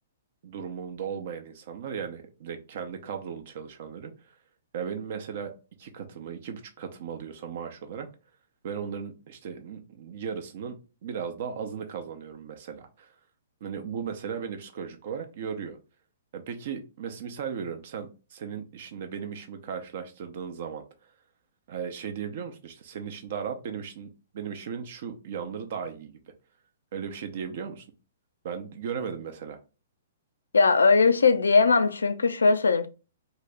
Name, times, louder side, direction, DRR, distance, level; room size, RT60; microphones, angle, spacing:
voice 1, 0.4-4.1 4.7-5.5 5.8-8.1 8.6-10.8 11.0-13.1 13.6-15.8 16.3-20.8 21.7-24.1 24.3-26.2 26.9-27.9 28.4-29.6, right 7 dB, 55° right, 0.7 m, -36 dB
voice 2, 30.5-32.9, left 4 dB, 75° left, 0.4 m, -20 dB
2.9 x 2.8 x 3.4 m
figure-of-eight pair, 115°, 0 cm